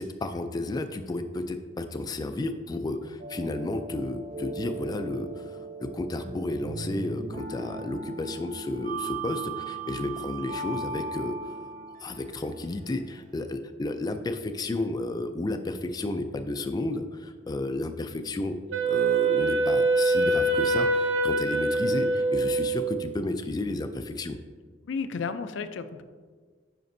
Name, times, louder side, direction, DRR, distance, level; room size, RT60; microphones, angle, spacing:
voice 1, 0.0-11.4 12.0-18.6 18.8-24.4, left 2 dB, 20° left, 7 dB, 0.3 m, -32 dB
sound 1, 3.2-13.3, right 4 dB, 45° right, 0.4 m, -38 dB
Wind instrument woodwind instrument, 18.7-23.0, right 2 dB, 85° right, 0.7 m, -24 dB
voice 2, 24.8-26.0, left 5 dB, 90° left, 9 dB, 0.4 m, -33 dB
9.4 x 5.1 x 2.6 m, 1.5 s
head